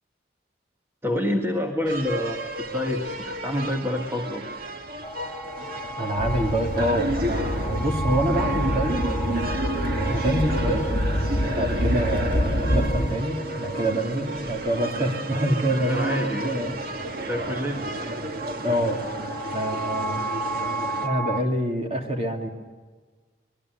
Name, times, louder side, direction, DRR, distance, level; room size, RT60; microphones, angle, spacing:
voice 1, 1.0-4.4 15.9-16.8 17.3-17.9, left 1 dB, 15° right, 1 dB, 1.8 m, -28 dB
sound 1, 1.9-21.1, right 2 dB, 55° right, 1.7 m, -32 dB
sound 2, 5.0-21.4, right 1 dB, 10° left, 0.6 m, -35 dB
voice 2, 6.0-9.0 10.1-10.9 11.4-17.0 18.6-19.0 19.5-20.2 21.0-22.5, right 1 dB, 35° right, 3 dB, 3.0 m, -26 dB
sound 3, 6.2-13.1, equal, 50° left, 2.1 m, -27 dB
25.5 x 21.0 x 8.0 m, 1.4 s
head